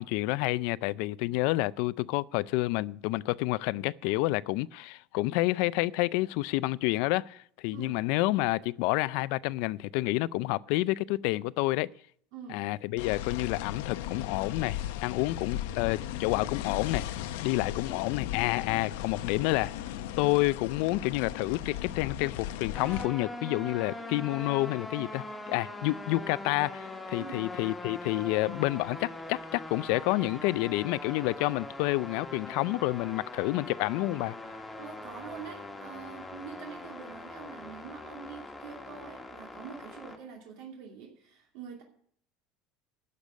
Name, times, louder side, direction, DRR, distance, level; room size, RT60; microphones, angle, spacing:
voice 1, 0.0-11.9 12.5-17.0 17.4-19.7 20.2-34.4, left 19 dB, 65° left, 0.4 m, -29 dB
voice 2, 12.3-12.6 27.2-27.5 34.8-41.8, right 6 dB, 70° right, 2.6 m, -45 dB
sound 1, 13.0-23.1, left 12 dB, 90° left, 0.8 m, -36 dB
sound 2, 22.7-40.2, left 2 dB, 5° left, 1.3 m, -42 dB
11.5 x 6.8 x 8.3 m
cardioid pair, 150°, 0 cm